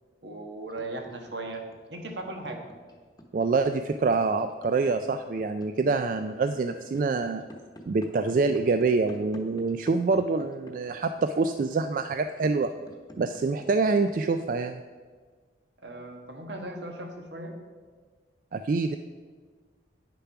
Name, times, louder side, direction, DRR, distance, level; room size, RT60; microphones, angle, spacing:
voice 1, 0.2-1.6 1.9-2.6 15.8-17.5, right 2 dB, 75° right, 4 dB, 1.4 m, -37 dB
sound 1, 0.6-14.4, equal, 20° left, 1.0 m, -47 dB
voice 2, 3.3-7.4 7.9-12.7 13.2-14.8 18.5-19.0, right 4 dB, 45° right, 8 dB, 0.3 m, -26 dB
9.4 x 6.9 x 5.8 m, 1.5 s
head